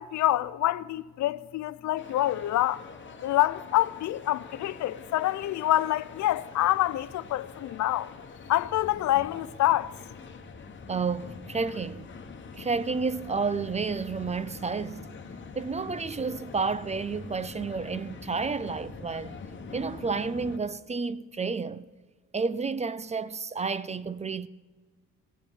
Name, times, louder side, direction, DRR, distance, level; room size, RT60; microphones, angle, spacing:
voice 1, 0.0-2.8 3.2-8.1 8.5-9.9, left 14 dB, 70° left, 0.5 m, -26 dB
sound 1, 2.0-20.6, left 4 dB, 40° left, 1.3 m, -44 dB
voice 2, 10.9-12.1 12.6-15.1 15.6-19.4 19.7-21.9 22.3-24.5, right 4 dB, 25° right, 0.4 m, -31 dB
16.0 x 7.0 x 7.9 m
cardioid pair, 90°, 30 cm